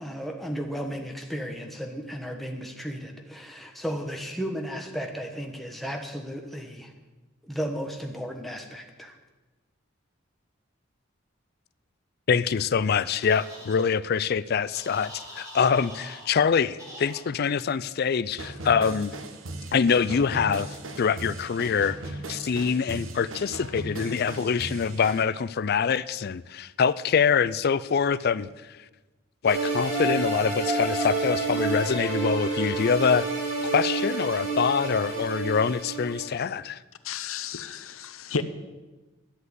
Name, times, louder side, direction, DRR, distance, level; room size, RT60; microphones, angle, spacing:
voice 1, 0.0-6.9 7.4-9.1, equal, ahead, 1.1 m, -34 dB
voice 2, 12.3-19.1 19.7-28.5 29.4-33.3 33.6-36.8, left 6 dB, 50° left, 0.4 m, -25 dB
sound 1, 13.2-13.8 14.7-16.3 16.8-17.2, equal, 15° right, 5.5 m, -44 dB
sound 2, 18.4-25.2, right 2 dB, 70° right, 1.2 m, -38 dB
sound 3, 29.5-36.4, right 3 dB, 35° right, 4.1 m, -29 dB
voice 3, 37.0-38.4, left 5 dB, 80° left, 0.7 m, -32 dB
11.5 x 8.1 x 8.1 m
head